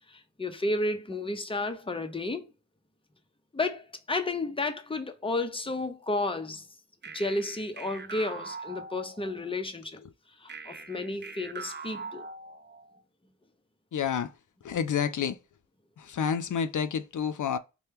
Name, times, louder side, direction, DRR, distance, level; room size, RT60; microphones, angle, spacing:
voice 1, 0.1-2.5 3.5-6.6 7.1-10.0 10.4-12.3, left 2 dB, 20° left, 0.7 m, -32 dB
sound 1, 7.0-9.5 10.5-13.0, right 4 dB, 35° right, 0.5 m, -43 dB
voice 2, 13.9-14.3 14.6-15.4 16.0-17.6, left 7 dB, 80° left, 0.5 m, -29 dB
4.3 x 2.3 x 3.4 m
cardioid pair, 50°, 30 cm